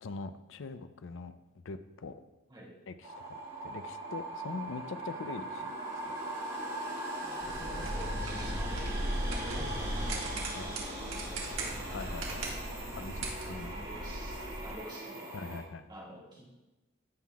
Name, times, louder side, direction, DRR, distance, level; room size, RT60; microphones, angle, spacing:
voice 1, 0.0-1.4 1.6-2.2 2.9-5.7 6.0-6.2 8.5-8.6 10.6-10.7 11.9-12.6 13.0-13.7 15.3-15.8, left 4 dB, 65° left, 11 dB, 0.5 m, -42 dB
sound 1, 3.0-15.6, right 1 dB, 50° right, 2.9 m, -40 dB
voice 2, 7.2-9.0 9.3-11.8 13.5-15.4 15.9-16.5, right 1 dB, 20° right, -4 dB, 1.9 m, -49 dB
sound 2, 7.4-14.7, right 1 dB, 70° right, 1.8 m, -37 dB
15.5 x 5.7 x 2.4 m, 1.1 s
head